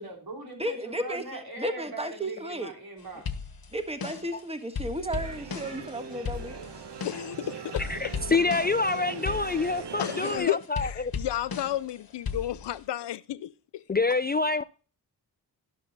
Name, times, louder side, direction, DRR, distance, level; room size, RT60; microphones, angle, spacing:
voice 1, 0.0-3.3 8.3-9.5, right 2 dB, 60° right, 3.4 m, -41 dB
voice 2, 0.6-2.7 3.7-6.6, right 1 dB, 15° right, 1.4 m, -34 dB
sound 1, 3.3-4.4 4.8-7.4 7.8-8.9 9.2-11.9 12.3-12.9, left 5 dB, 60° left, 1.1 m, -36 dB
sound 2, 5.1-10.4, right 5 dB, 80° right, 1.2 m, -40 dB
voice 3, 7.0-7.9 10.0-13.8, left 12 dB, 90° left, 0.5 m, -32 dB
voice 4, 7.8-11.1 13.9-14.6, left 3 dB, 25° left, 0.4 m, -27 dB
10.5 x 6.6 x 4.0 m
cardioid pair, 40°, 40 cm